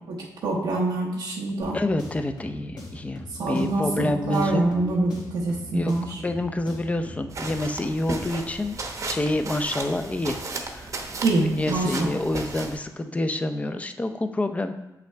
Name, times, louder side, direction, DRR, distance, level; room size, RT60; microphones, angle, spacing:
voice 1, 0.1-1.8 3.4-6.2 11.2-12.1, right 2 dB, 90° right, -4 dB, 0.9 m, -25 dB
sound 1, 1.6-7.8, left 1 dB, 85° left, 2.0 m, -42 dB
voice 2, 1.7-4.6 5.7-8.8 9.1-10.4 10.7-10.9 11.4-14.7, left 2 dB, 20° left, 8 dB, 0.5 m, -28 dB
sound 2, 7.3-12.8, right 3 dB, 50° right, 0.9 m, -34 dB
7.6 x 5.8 x 3.4 m, 0.95 s
cardioid pair, 100°, 7 cm